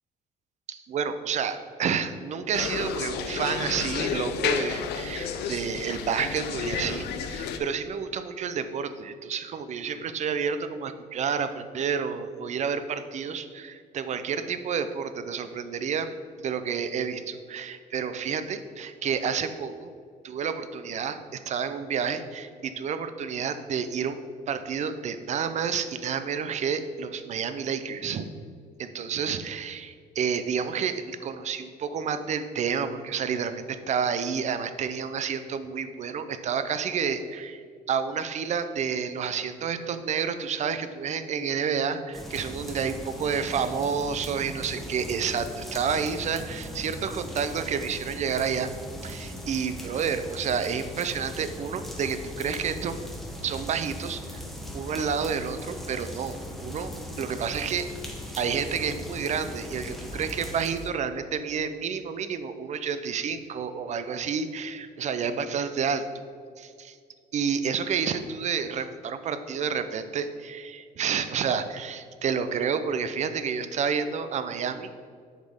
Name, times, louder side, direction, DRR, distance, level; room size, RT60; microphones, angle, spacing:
voice 1, 0.7-16.1 16.4-19.9 20.2-24.2 24.5-28.3 28.8-48.7 49.0-53.0 53.4-54.2 54.7-56.9 57.2-57.9 58.4-66.2 66.6-67.0 67.3-75.1, right 6 dB, 45° right, 11 dB, 0.5 m, -30 dB
sound 1, 2.5-7.6, left 7 dB, 80° left, 0.6 m, -31 dB
sound 2, 42.1-60.9, equal, ahead, 0.9 m, -39 dB
7.3 x 5.3 x 3.6 m, 2.1 s
cardioid pair, 110°, 17 cm